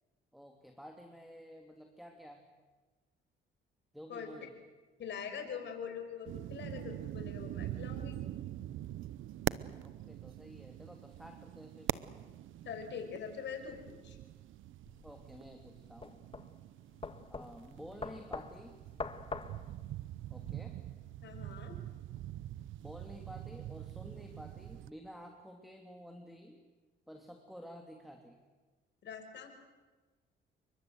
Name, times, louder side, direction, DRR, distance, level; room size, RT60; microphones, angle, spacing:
voice 1, 0.3-2.5 3.9-4.5 9.8-12.0 15.0-16.2 17.3-18.8 20.3-20.8 22.8-26.6 27.1-28.4, equal, ahead, 3 dB, 3.0 m, -51 dB
voice 2, 5.0-8.2 12.6-14.2 21.2-21.8 29.0-29.5, left 7 dB, 65° left, 6 dB, 5.8 m, -43 dB
sound 1, 6.3-24.9, right 13 dB, 80° right, 0.8 m, -44 dB
sound 2, 14.9-20.5, left 4 dB, 30° left, 1.7 m, -45 dB
29.0 x 23.5 x 8.0 m, 1.3 s
cardioid pair, 90°, 20 cm